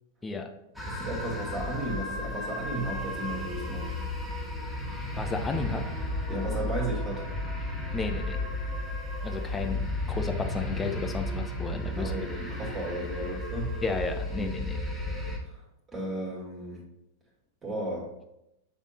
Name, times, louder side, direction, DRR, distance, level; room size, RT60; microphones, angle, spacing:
sound 1, 0.7-15.4, left 1 dB, ahead, 1.9 m, -33 dB
voice 1, 0.9-3.9 6.3-7.2 9.5-9.8 12.0-13.8 14.3-14.5 15.4-15.6 15.9-16.8 17.6-18.1, right 1 dB, 25° right, -5 dB, 2.1 m, -34 dB
voice 2, 5.2-5.8 7.9-8.4 9.2-12.3 13.8-14.8, left 3 dB, 15° left, 4 dB, 0.9 m, -33 dB
7.3 x 3.6 x 4.2 m, 0.87 s
figure-of-eight pair, 100°, 0 cm